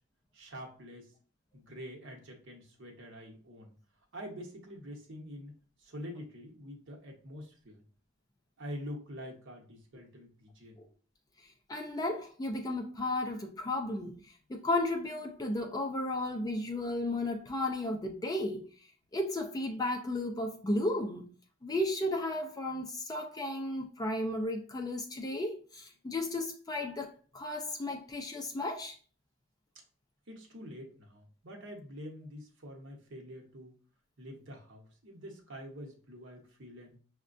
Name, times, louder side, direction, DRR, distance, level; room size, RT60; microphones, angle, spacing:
voice 1, 0.3-1.1 1.5-3.7 4.1-5.5 5.8-7.8 8.6-10.8 30.3-33.7 34.2-37.0, equal, 55° right, 0.9 m, -46 dB
voice 2, 11.7-14.2 14.5-18.6 19.1-21.2 21.6-29.0, left 1 dB, 15° left, 0.3 m, -34 dB
6.0 x 2.1 x 2.5 m
head